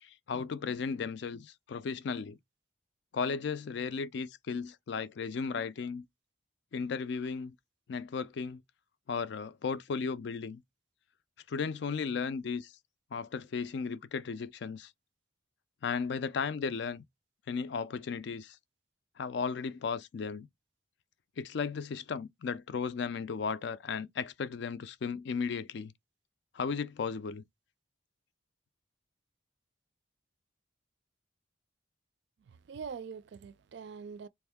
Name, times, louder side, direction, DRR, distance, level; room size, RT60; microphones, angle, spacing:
voice 1, 0.0-2.4 3.1-6.0 6.7-7.5 7.9-8.6 9.1-10.6 11.5-12.7 13.1-14.9 15.8-17.0 17.5-18.6 19.2-20.5 21.4-25.9 26.5-27.4, left 5 dB, 55° left, 0.3 m, -35 dB
voice 2, 32.5-34.3, right 6 dB, 60° right, 0.3 m, -43 dB
3.4 x 2.6 x 3.4 m
head